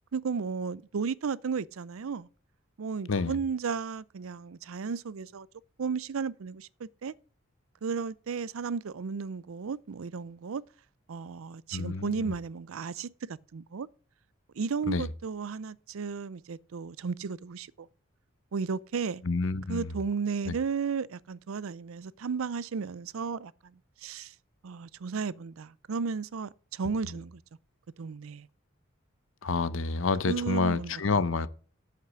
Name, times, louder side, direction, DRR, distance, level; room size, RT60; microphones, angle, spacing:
voice 1, 0.1-2.3 2.8-5.5 5.8-7.1 7.8-10.6 11.1-13.9 14.6-17.9 18.5-19.2 19.7-24.3 24.6-27.4 28.0-28.5 30.3-31.2, right 5 dB, 80° right, 0.5 m, -34 dB
voice 2, 11.7-12.3 14.9-15.1 19.2-19.9 20.5-20.6 29.4-31.5, left 4 dB, 70° left, 0.7 m, -28 dB
8.2 x 8.1 x 6.2 m
head